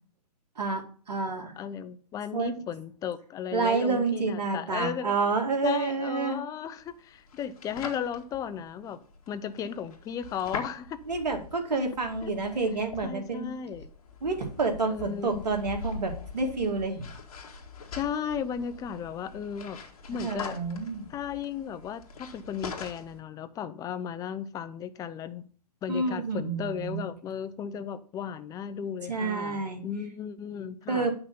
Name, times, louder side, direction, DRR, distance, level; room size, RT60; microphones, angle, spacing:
voice 1, 0.6-1.5 2.3-2.6 3.5-6.4 11.1-13.5 14.2-17.1 20.1-21.0 25.9-27.1 29.1-29.8 30.9-31.1, right 4 dB, 85° right, 2.4 m, -29 dB
voice 2, 1.6-5.1 5.6-11.0 12.2-12.3 13.0-13.9 14.9-15.4 17.9-19.8 20.1-20.6 21.1-25.5 25.8-31.1, left 8 dB, 15° left, 0.6 m, -35 dB
sound 1, 6.8-23.2, left 4 dB, 60° left, 2.0 m, -43 dB
9.0 x 5.9 x 4.0 m
hypercardioid pair, 130°, 20 cm